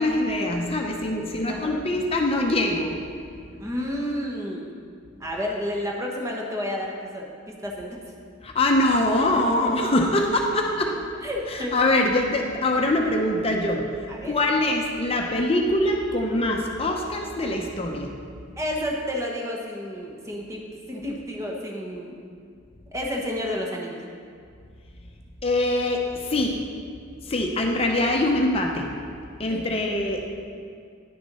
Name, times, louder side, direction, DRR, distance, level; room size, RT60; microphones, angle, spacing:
voice 1, 0.0-3.0 8.4-11.0 11.5-13.9 14.2-18.1 25.4-26.6 27.2-28.9 29.4-30.3, left 1 dB, 30° left, 1 dB, 0.7 m, -23 dB
voice 2, 3.6-4.7 5.2-8.0 9.2-9.7 11.2-11.8 14.1-14.4 18.6-20.6 20.9-22.2 22.9-24.0 28.0-28.1 29.5-29.6, equal, 15° right, -1 dB, 1.2 m, -31 dB
10.5 x 6.7 x 5.5 m, 2.2 s
head